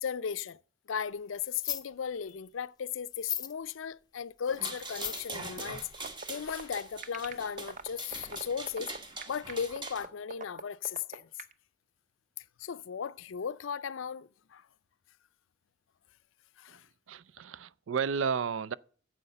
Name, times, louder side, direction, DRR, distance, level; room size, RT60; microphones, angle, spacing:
voice 1, 0.0-0.6 0.9-8.9 9.3-11.2 12.4-14.6 16.6-16.8, left 7 dB, 80° left, 0.5 m, -36 dB
sound 1, 1.4-1.9 2.3-2.4 3.1-3.5 4.4-5.3 6.3-6.4 6.5-6.6, left 10 dB, 20° left, 0.6 m, -37 dB
sound 2, 4.5-10.1, right 2 dB, 25° right, 1.3 m, -43 dB
sound 3, 5.9-11.5, right 4 dB, 40° right, 0.7 m, -41 dB
voice 2, 17.1-18.7, right 6 dB, 80° right, 0.4 m, -32 dB
9.7 x 7.7 x 6.6 m
head